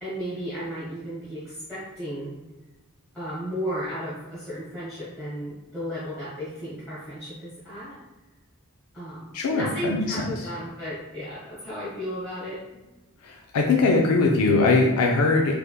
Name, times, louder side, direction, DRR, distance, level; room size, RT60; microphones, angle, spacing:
voice 1, 0.0-2.3 3.1-8.0 8.9-9.3 9.5-12.8, equal, 5° left, -12 dB, 1.1 m, -34 dB
voice 2, 9.3-10.4 13.2-15.5, left 3 dB, 85° left, 0 dB, 0.4 m, -21 dB
3.3 x 3.3 x 2.3 m, 1.1 s
head